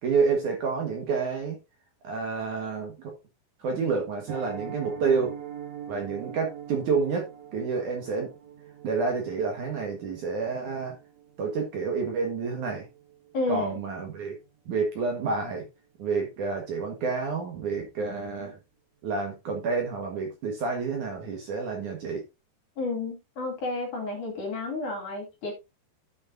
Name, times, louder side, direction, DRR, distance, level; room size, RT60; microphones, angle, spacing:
voice 1, 0.0-1.6 2.0-3.1 3.6-5.4 5.9-8.3 8.8-11.0 11.4-12.9 13.5-14.4 14.7-15.7 16.0-18.6 19.0-22.2, right 5 dB, 55° right, 2 dB, 2.6 m, -29 dB
Piano, 4.3-15.2 15.4-15.7 16.0-16.1 16.5-16.7 17.0-17.1, right 8 dB, 85° right, 4.4 m, -44 dB
voice 2, 13.3-13.8 22.8-25.5, left 2 dB, 50° left, 1 dB, 3.8 m, -31 dB
13.0 x 6.6 x 2.6 m, 0.24 s
omnidirectional pair, 4.8 m